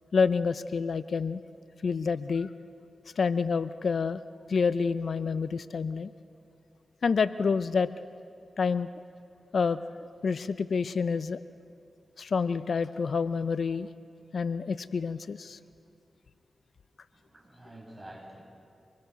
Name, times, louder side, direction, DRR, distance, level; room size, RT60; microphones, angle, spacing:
voice 1, 0.1-1.4 1.8-2.5 3.2-4.2 4.5-6.1 7.0-7.9 8.6-8.9 9.5-9.8 10.2-11.4 12.2-13.9 14.3-15.6, left 5 dB, 70° left, 14 dB, 0.6 m, -28 dB
voice 2, 17.1-18.4, right 1 dB, 25° right, 0 dB, 7.3 m, -48 dB
26.0 x 21.0 x 6.8 m, 2.4 s
cardioid pair, 45°, 0 cm